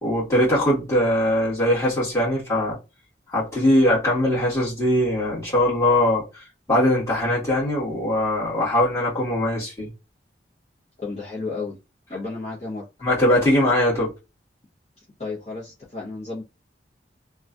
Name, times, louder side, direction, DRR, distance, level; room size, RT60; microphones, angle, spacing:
voice 1, 0.0-2.8 3.3-9.9 13.0-14.1, left 1 dB, 15° left, 1.6 m, -21 dB
voice 2, 11.0-11.8 12.1-12.8 15.0-16.4, left 3 dB, 35° left, 1.0 m, -33 dB
3.0 x 2.3 x 2.5 m
head